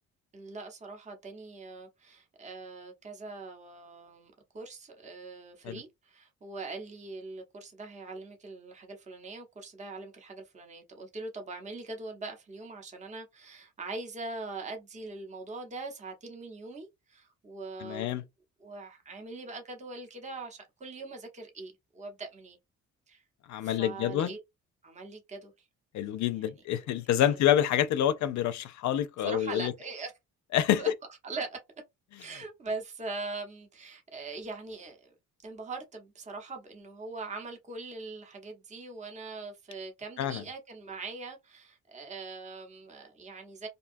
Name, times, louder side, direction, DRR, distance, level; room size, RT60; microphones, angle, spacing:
voice 1, 0.3-18.2 18.6-22.6 23.1-23.2 23.6-24.4 24.8-25.7 26.3-26.9 27.2-27.4 29.2-30.1 30.8-30.9 31.2-31.6 32.2-35.1 35.4-43.7, right 3 dB, 25° right, 0.8 m, -42 dB
voice 2, 17.8-18.2 23.5-24.3 25.9-29.7 30.5-30.8 40.2-40.4, left 11 dB, 70° left, 0.4 m, -27 dB
2.6 x 2.2 x 2.5 m
cardioid pair, 90°, 30 cm